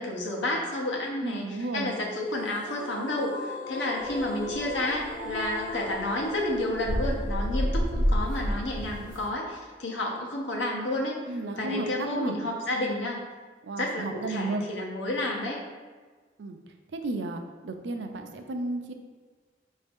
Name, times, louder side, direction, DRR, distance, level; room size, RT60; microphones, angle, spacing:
voice 1, 0.0-11.2 11.6-13.2 13.8-15.6, left 1 dB, 85° left, -1 dB, 0.9 m, -30 dB
voice 2, 1.2-2.0 11.3-12.4 13.6-14.6 16.4-16.6 16.9-18.9, right 2 dB, 75° right, 5 dB, 0.4 m, -33 dB
sound 1, 2.4-9.5, left 2 dB, 45° left, 0.6 m, -39 dB
sound 2, 4.0-9.3, equal, 50° right, 0.9 m, -30 dB
5.0 x 2.7 x 3.5 m, 1.4 s
head